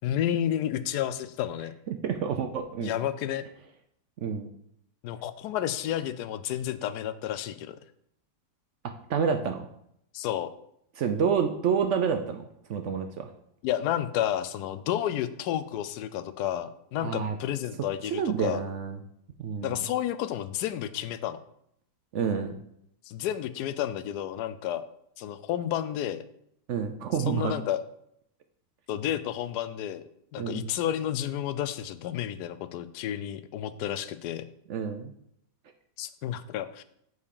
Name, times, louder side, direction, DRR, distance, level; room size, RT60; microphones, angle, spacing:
voice 1, 0.0-1.7 2.8-3.4 5.0-7.8 10.1-10.5 13.6-18.6 19.6-21.4 23.1-24.9 25.2-26.2 27.3-27.8 28.9-30.0 30.3-34.5 36.0-36.8, left 11 dB, 75° left, 13 dB, 1.1 m, -31 dB
voice 2, 1.9-2.9 4.2-4.5 9.1-9.7 11.0-12.4 12.7-13.3 17.0-17.4 18.1-19.0 19.4-19.8 22.1-22.6 26.7-27.6 30.4-30.7 34.7-35.1, right 6 dB, 65° right, 7 dB, 0.7 m, -28 dB
5.7 x 4.7 x 6.5 m, 0.73 s
omnidirectional pair, 1.8 m